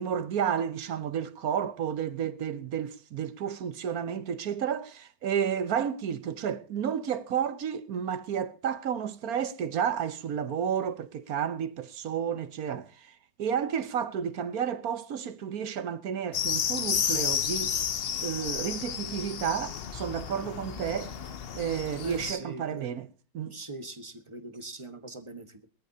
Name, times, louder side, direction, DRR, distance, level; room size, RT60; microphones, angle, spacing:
voice 1, 0.0-17.7 18.2-21.1 21.5-23.1 23.3-23.6, right 8 dB, 60° right, 1.2 m, -31 dB
sound 1, 16.3-22.3, left 8 dB, 90° left, 0.5 m, -32 dB
voice 2, 22.0-22.9 23.5-25.7, right 2 dB, 20° right, 1.1 m, -41 dB
21.0 x 13.5 x 2.7 m
omnidirectional pair, 2.1 m